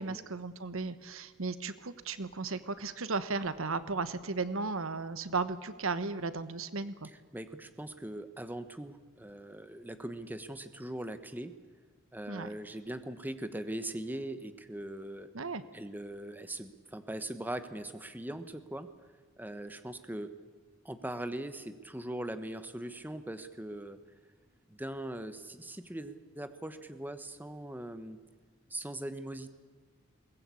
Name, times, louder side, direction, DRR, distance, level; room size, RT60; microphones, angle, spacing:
voice 1, 0.0-7.1 12.3-12.5 15.3-15.6, right 4 dB, 80° right, 13 dB, 1.2 m, -35 dB
voice 2, 7.3-11.5 12.1-15.3 15.7-18.9 19.4-20.3 20.8-24.0 24.7-28.2 28.7-29.5, right 1 dB, 10° right, 10 dB, 1.2 m, -40 dB
22.0 x 19.0 x 8.5 m, 1.4 s
head